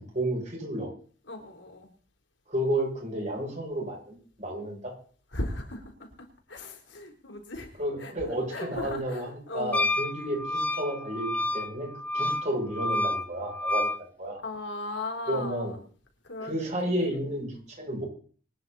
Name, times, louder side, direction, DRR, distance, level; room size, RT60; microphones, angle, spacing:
voice 1, 0.1-0.9 2.5-4.9 7.8-13.9 14.2-14.4 15.3-15.7 16.4-18.1, right 1 dB, 40° right, -1 dB, 7.5 m, -32 dB
voice 2, 1.3-1.9 5.3-7.7 8.0-9.9 12.2-12.4 14.4-15.8 16.2-17.2, left 2 dB, 70° left, 3 dB, 3.9 m, -37 dB
Wind instrument woodwind instrument, 9.7-14.0, left 1 dB, 10° left, 0.6 m, -29 dB
24.5 x 9.8 x 4.2 m, 0.42 s
head